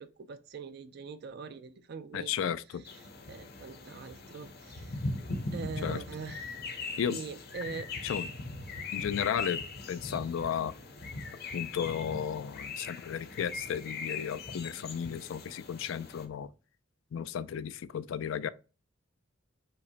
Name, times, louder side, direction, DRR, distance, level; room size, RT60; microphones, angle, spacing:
voice 1, 0.0-2.5 3.3-5.0 5.5-6.7 7.1-7.9 8.8-9.0, right 5 dB, 55° right, 0.4 m, -43 dB
voice 2, 2.1-2.8 5.8-6.0 7.0-7.2 8.0-8.3 8.9-10.7 11.5-16.5 17.1-18.5, left 8 dB, 75° left, 0.3 m, -34 dB
sound 1, 2.9-16.2, left 3 dB, 55° left, 0.7 m, -40 dB
5.7 x 2.1 x 3.9 m
head